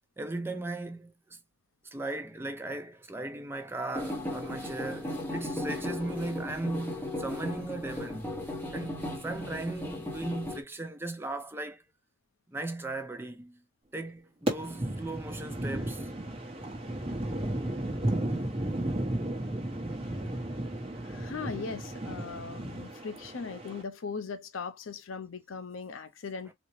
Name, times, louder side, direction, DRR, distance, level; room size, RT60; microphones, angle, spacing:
voice 1, 0.2-1.4 1.9-8.4 8.7-11.8 12.5-13.6 13.9-16.1, right 2 dB, 10° right, 0.4 m, -37 dB
sound 1, 3.9-10.6, left 1 dB, 10° left, 0.9 m, -36 dB
sound 2, 14.5-23.8, right 1 dB, 30° right, 0.8 m, -34 dB
voice 2, 21.0-26.5, left 5 dB, 80° left, 0.5 m, -39 dB
4.1 x 2.0 x 3.0 m
head